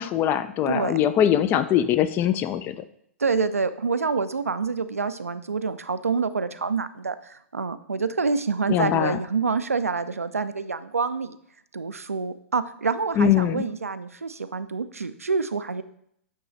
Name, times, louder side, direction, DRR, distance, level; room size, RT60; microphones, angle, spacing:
voice 1, 0.0-2.8 8.7-9.2 13.2-13.6, left 10 dB, 25° left, 13 dB, 0.4 m, -22 dB
voice 2, 0.7-1.0 3.2-11.4 11.7-15.8, right 4 dB, 85° right, 12 dB, 0.4 m, -27 dB
8.6 x 3.1 x 4.0 m, 0.68 s
figure-of-eight pair, 110°, 8 cm